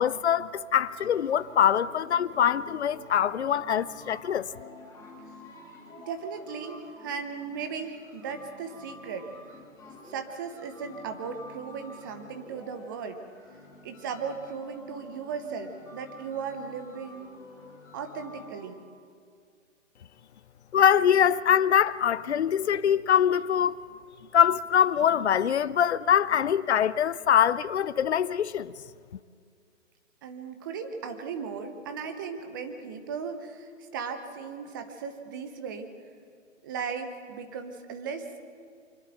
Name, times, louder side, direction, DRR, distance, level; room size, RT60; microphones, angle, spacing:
voice 1, 0.0-4.5 20.7-23.8 24.3-28.7, left 9 dB, 55° left, 0.7 m, -23 dB
sound 1, 0.8-18.7, left 2 dB, 10° left, 2.4 m, -49 dB
voice 2, 6.0-9.3 10.0-13.2 13.8-17.3 17.9-18.8 30.2-35.9 36.6-38.4, right 6 dB, 15° right, 0.9 m, -37 dB
25.0 x 11.5 x 9.0 m
hypercardioid pair, 150°, 39 cm